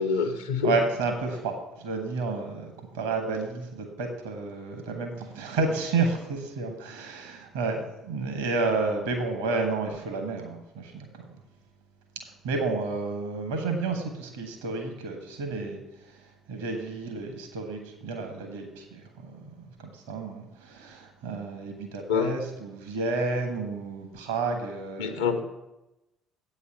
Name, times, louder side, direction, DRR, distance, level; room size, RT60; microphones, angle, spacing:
voice 1, 0.0-0.7 22.1-22.3 25.0-25.4, left 6 dB, 75° left, 7 dB, 0.9 m, -26 dB
voice 2, 0.6-11.4 12.4-15.8 16.1-16.2 16.5-25.3, right 3 dB, 70° right, 4 dB, 1.3 m, -31 dB
8.4 x 5.6 x 7.9 m, 0.94 s
figure-of-eight pair, 50°, 0 cm